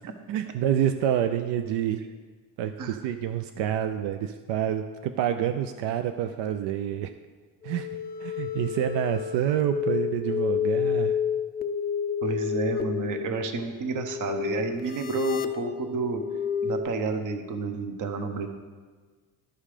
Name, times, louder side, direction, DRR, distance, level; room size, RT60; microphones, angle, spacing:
voice 1, 0.3-2.0 2.6-7.1 7.6-7.9 8.2-11.2, right 10 dB, 80° right, 8 dB, 0.6 m, -27 dB
sound 1, 7.6-16.8, left 8 dB, 25° left, 0.4 m, -30 dB
voice 2, 12.2-16.2 16.6-18.5, right 4 dB, 45° right, 6 dB, 1.0 m, -30 dB
11.5 x 5.5 x 5.0 m, 1.4 s
cardioid pair, 145°, 42 cm